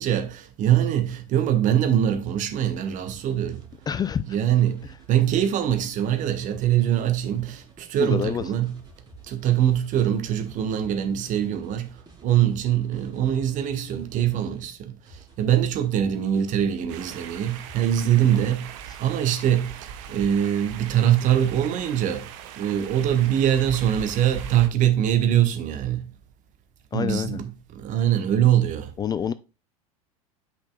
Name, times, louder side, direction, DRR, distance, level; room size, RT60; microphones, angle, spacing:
voice 1, 0.0-3.7 4.3-8.8 9.2-26.1 26.9-28.9, right 10 dB, 45° right, 1.3 m, -23 dB
sound 1, 2.8-14.7 15.1-18.3, right 2 dB, 20° right, 3.7 m, -51 dB
voice 2, 3.9-4.2 8.0-8.5 18.3-18.4 26.9-27.4 29.0-29.3, left 8 dB, 20° left, 0.4 m, -27 dB
sound 2, 16.9-24.7, right 9 dB, 60° right, 1.1 m, -39 dB
8.7 x 5.6 x 2.3 m
hypercardioid pair, 80°, 19 cm